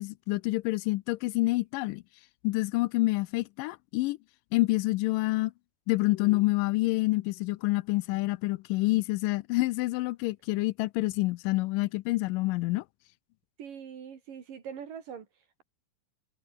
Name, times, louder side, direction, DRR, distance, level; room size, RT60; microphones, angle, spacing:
voice 1, 0.0-2.0 2.4-4.2 4.5-5.5 5.9-12.8, left 20 dB, 80° left, 2.2 m, -27 dB
voice 2, 13.6-15.6, right 7 dB, 75° right, 4.4 m, -43 dB
omnidirectional pair, 3.9 m